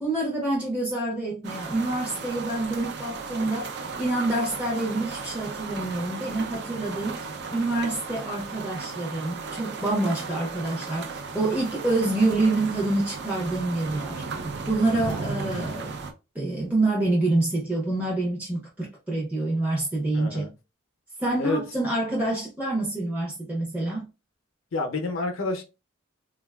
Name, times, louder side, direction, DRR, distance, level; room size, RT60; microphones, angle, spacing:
voice 1, 0.0-15.9 16.3-20.5 21.2-24.1, right 2 dB, 10° right, 0.6 m, -27 dB
sound 1, 1.4-16.1, right 4 dB, 55° right, 0.5 m, -35 dB
voice 2, 20.1-20.5 21.4-21.6 24.7-25.6, left 3 dB, 75° left, 0.6 m, -28 dB
3.6 x 2.3 x 2.2 m
head